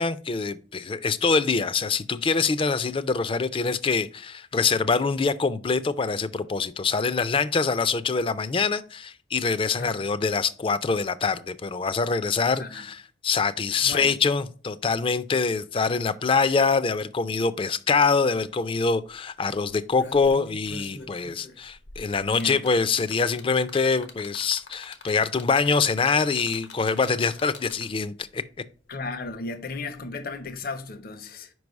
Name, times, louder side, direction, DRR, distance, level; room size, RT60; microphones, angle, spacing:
voice 1, 0.0-28.4, left 4 dB, 30° left, 0.4 m, -24 dB
voice 2, 13.8-14.2 22.3-22.6 28.9-31.5, left 3 dB, 55° left, 0.7 m, -35 dB
sound 1, 18.4-18.5 18.8-19.1 19.6-28.1 29.2-29.3, left 3 dB, 85° left, 1.2 m, -44 dB
5.2 x 4.7 x 5.2 m
head